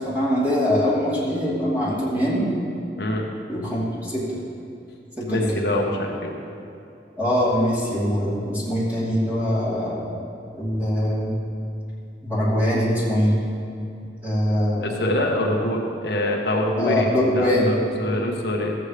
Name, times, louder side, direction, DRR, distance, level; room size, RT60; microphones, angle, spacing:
voice 1, 0.0-2.5 3.5-4.4 5.2-5.6 7.2-10.1 10.5-11.3 12.2-13.3 14.2-15.0 16.8-17.8, equal, 10° right, -9 dB, 2.7 m, -22 dB
voice 2, 3.0-3.3 5.3-6.4 14.8-17.1 17.3-18.7, left 1 dB, 70° left, 0 dB, 1.1 m, -25 dB
14.5 x 8.1 x 3.3 m, 2.6 s
head